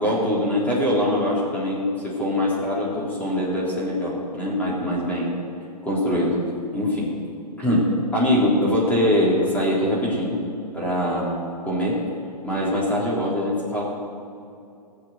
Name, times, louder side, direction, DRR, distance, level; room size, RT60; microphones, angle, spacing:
voice 1, 0.0-5.3 5.8-6.4 6.7-7.1 7.6-10.4 10.7-11.4 11.6-12.0 12.4-13.8, left 1 dB, 5° left, -6 dB, 3.7 m, -23 dB
18.0 x 7.1 x 7.8 m, 2.6 s
hypercardioid pair, 140°, 21 cm